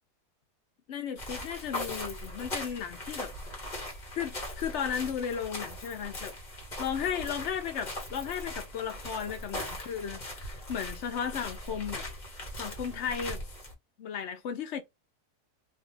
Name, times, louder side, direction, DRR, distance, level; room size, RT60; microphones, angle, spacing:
voice 1, 0.9-3.3 4.1-6.3 6.8-12.0 12.6-13.4 14.0-14.8, left 8 dB, 65° left, 0.7 m, -35 dB
sound 1, 1.2-13.7, left 1 dB, 30° left, 1.2 m, -40 dB
2.8 x 2.3 x 3.7 m
omnidirectional pair, 1.7 m